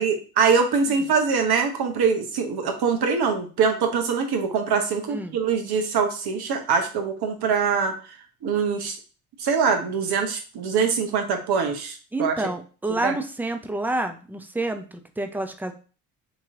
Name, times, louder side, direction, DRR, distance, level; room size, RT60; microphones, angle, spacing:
voice 1, 0.0-7.9 8.4-9.0 9.4-12.3 13.0-13.2, right 5 dB, 55° right, 5 dB, 1.0 m, -23 dB
voice 2, 12.1-15.7, right 2 dB, 5° right, 7 dB, 0.4 m, -28 dB
3.0 x 2.9 x 3.6 m, 0.37 s
hypercardioid pair, 60°, 45 cm